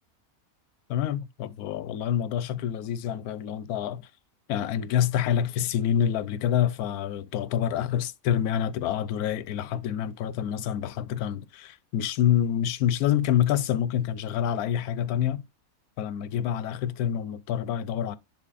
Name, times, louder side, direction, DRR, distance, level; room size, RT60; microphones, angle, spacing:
voice 1, 0.9-4.1 4.5-15.4 16.0-18.2, left 10 dB, 85° left, 1.1 m, -27 dB
10.5 x 4.1 x 2.4 m
omnidirectional pair, 1.5 m